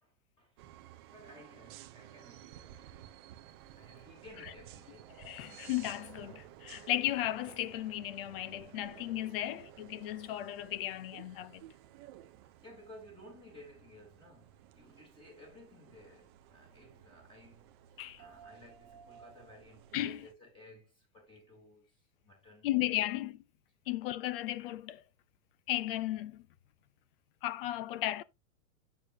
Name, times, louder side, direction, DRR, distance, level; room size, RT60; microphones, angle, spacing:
voice 1, 0.0-0.7 1.1-3.2 3.8-5.2 12.6-17.8 18.2-22.7 23.1-23.2 23.9-24.1, left 1 dB, 10° left, 3.6 m, -56 dB
sound 1, 0.6-20.3, right 12 dB, 20° right, 0.4 m, -54 dB
voice 2, 5.2-11.6 18.0-18.2 19.9-20.3 22.6-23.4 23.9-25.0 25.7-26.4 27.4-28.2, left 14 dB, 40° left, 0.6 m, -35 dB
8.4 x 6.7 x 2.8 m
hypercardioid pair, 145°, 44 cm